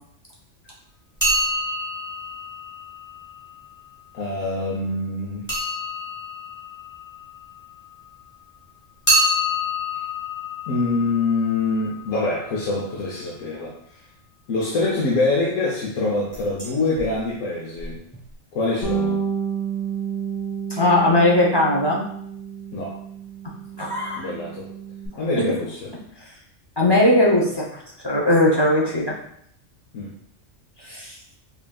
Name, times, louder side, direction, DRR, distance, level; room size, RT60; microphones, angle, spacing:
sound 1, 1.2-3.9 5.5-8.2 9.1-12.9 16.3-16.7 17.0-17.1 17.8-17.9 18.1-18.2, left 1 dB, 10° left, 1.2 m, -27 dB
voice 1, 4.1-5.5 10.7-13.7 14.5-18.0 18.5-19.2 22.7-23.0 24.2-24.7 25.2-25.9 29.9-30.1, left 3 dB, 80° left, -5 dB, 1.1 m, -25 dB
Bass guitar, 18.8-25.1, right 6 dB, 65° left, 1.4 m, -30 dB
voice 2, 20.7-22.0 23.8-24.3 25.3-25.5 26.8-29.1 30.9-31.1, left 1 dB, 30° left, -4 dB, 0.5 m, -19 dB
5.5 x 2.6 x 2.3 m, 0.68 s
omnidirectional pair, 1.3 m